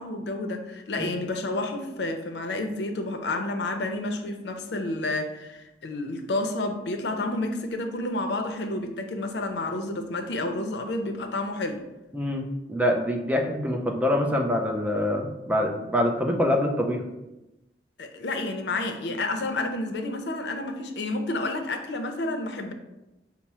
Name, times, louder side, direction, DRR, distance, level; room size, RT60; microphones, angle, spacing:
voice 1, 0.0-11.8 18.0-22.7, left 2 dB, 75° left, 6 dB, 0.6 m, -30 dB
voice 2, 12.1-12.4 12.7-17.0, left 1 dB, 10° right, 2 dB, 0.4 m, -25 dB
5.8 x 2.0 x 4.2 m, 0.97 s
head